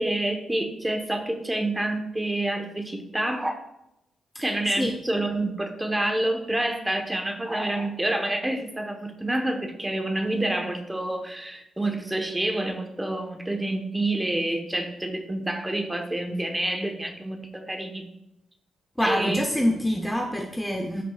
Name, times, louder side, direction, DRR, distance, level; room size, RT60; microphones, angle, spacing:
voice 1, 0.0-3.6 4.4-18.1 19.0-19.4, right 1 dB, 10° right, 5 dB, 1.3 m, -28 dB
voice 2, 19.0-21.0, equal, 5° left, 2 dB, 0.9 m, -26 dB
13.5 x 6.0 x 2.5 m, 0.85 s
cardioid pair, 100°, 0 cm